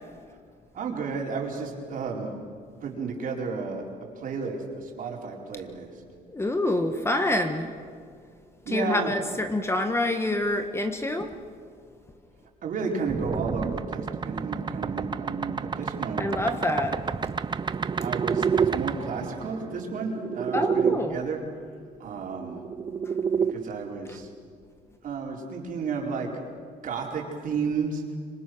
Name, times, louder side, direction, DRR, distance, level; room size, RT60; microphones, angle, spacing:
voice 1, 0.7-2.3 2.8-3.9 4.1-6.0 8.6-9.1 12.6-16.3 18.0-21.4 22.0-22.6 23.3-24.3 25.0-26.5 26.8-28.0, right 5 dB, 55° right, 0 dB, 4.8 m, -32 dB
voice 2, 6.3-7.7 8.7-11.3 16.2-17.0 20.5-21.2 24.1-24.2, left 1 dB, 15° left, 6 dB, 1.5 m, -27 dB
sound 1, 13.1-21.0 22.3-23.5, right 6 dB, 25° right, 0.7 m, -29 dB
25.5 x 25.5 x 6.4 m, 2.1 s
cardioid pair, 110°, 17 cm